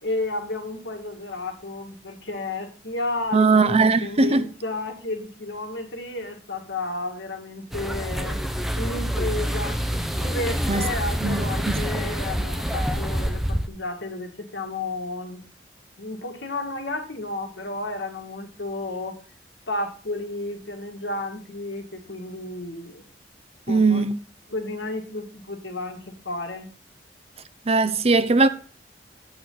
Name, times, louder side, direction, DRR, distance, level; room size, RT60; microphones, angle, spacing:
voice 1, 0.0-8.4 8.8-9.8 10.2-15.4 16.0-19.1 19.7-23.0 23.7-24.1 24.5-26.7, left 2 dB, 85° left, 2.2 m, -32 dB
voice 2, 3.3-4.4 10.7-10.8 11.2-11.7 23.7-24.1 27.7-28.5, right 3 dB, 35° right, 0.6 m, -19 dB
sound 1, 7.7-13.7, equal, ahead, 0.7 m, -27 dB
8.7 x 8.2 x 3.9 m
head